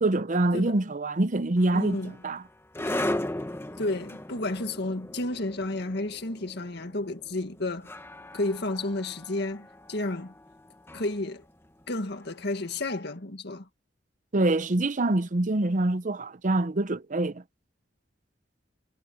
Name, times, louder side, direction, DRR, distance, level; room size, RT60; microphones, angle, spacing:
voice 1, 0.0-2.0 2.2-2.4 14.3-17.4, right 2 dB, 40° right, 0.7 m, -25 dB
sound 1, 1.6-12.7, left 1 dB, 10° left, 1.0 m, -38 dB
voice 2, 1.7-2.1 3.8-7.9 8.3-10.3 10.9-11.4 11.9-13.7, left 2 dB, 60° left, 1.9 m, -31 dB
head